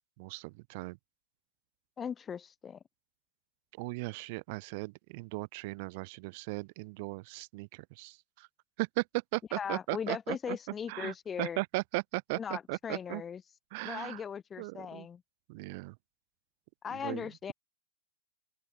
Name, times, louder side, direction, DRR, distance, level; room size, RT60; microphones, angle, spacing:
voice 1, 0.2-1.0 3.8-8.5 8.8-10.6 10.9-13.2 13.7-14.2 14.6-15.1 15.5-16.0 16.9-17.5, right 26 dB, 50° right, 5.9 m, -37 dB
voice 2, 2.0-2.8 9.6-11.6 12.3-13.4 13.8-15.2 16.8-17.5, left 7 dB, 20° left, 7.6 m, -38 dB
open air
hypercardioid pair, 120°, 0 cm